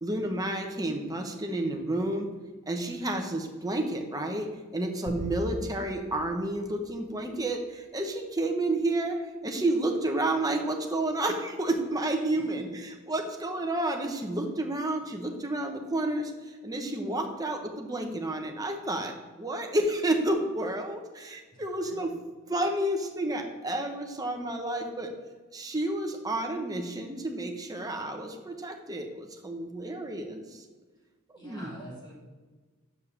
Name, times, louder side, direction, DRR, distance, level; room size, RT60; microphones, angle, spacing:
voice 1, 0.0-2.3 2.7-22.1 22.5-25.1 25.5-30.6 31.4-31.7, right 1 dB, 15° right, 3 dB, 1.0 m, -30 dB
sound 1, 5.1-7.6, equal, 60° right, 1.2 m, -41 dB
voice 2, 31.4-32.1, right 1 dB, 20° left, -6 dB, 2.9 m, -46 dB
6.8 x 5.4 x 6.5 m, 1.3 s
head